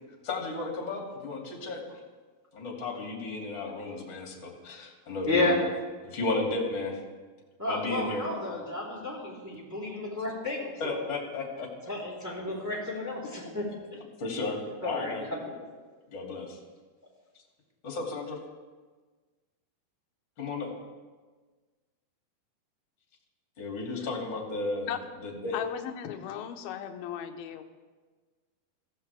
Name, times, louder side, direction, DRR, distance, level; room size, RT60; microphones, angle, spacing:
voice 1, 0.2-2.0 2.5-5.7 6.0-7.0 7.6-8.3 10.8-11.7 14.2-15.2 16.1-16.6 17.8-18.4 20.4-20.7 23.6-24.9 25.2-25.5, left 3 dB, 30° left, -1 dB, 2.8 m, -33 dB
voice 2, 5.2-5.6 7.6-10.9 11.9-13.6 14.8-15.6, left 2 dB, 5° right, -4 dB, 3.3 m, -32 dB
voice 3, 25.5-27.6, left 9 dB, 75° left, 5 dB, 2.6 m, -36 dB
21.5 x 16.0 x 3.5 m, 1.4 s
omnidirectional pair, 4.8 m